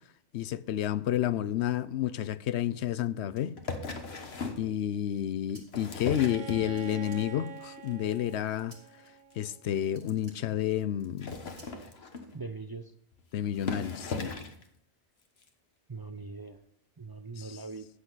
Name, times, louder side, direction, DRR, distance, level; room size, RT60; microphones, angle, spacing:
voice 1, 0.3-3.5 4.6-8.7 9.4-11.3 13.3-14.3 17.4-17.6, left 11 dB, 85° left, 0.9 m, -30 dB
sound 1, 3.4-4.4 5.5-5.6 6.0-6.5 6.8-7.7 8.7-9.1 9.4-9.6 9.8-11.0 11.6-11.7 12.1-12.8, right 2 dB, 80° right, 3.4 m, -58 dB
sound 2, 3.6-4.7 5.5-7.1 7.5-7.9 8.2-8.3 8.6-8.7 8.9-9.0 9.3-9.4 10.0-10.1 11.0-12.4 13.1-13.2 13.5-14.6 15.4-15.5, left 4 dB, 70° left, 1.5 m, -37 dB
Bowed string instrument, 6.1-9.9, right 6 dB, 50° right, 0.9 m, -46 dB
voice 2, 12.3-12.8 15.9-16.6 17.0-17.9, right 4 dB, 35° right, 0.4 m, -41 dB
13.0 x 8.3 x 4.0 m
omnidirectional pair, 1.1 m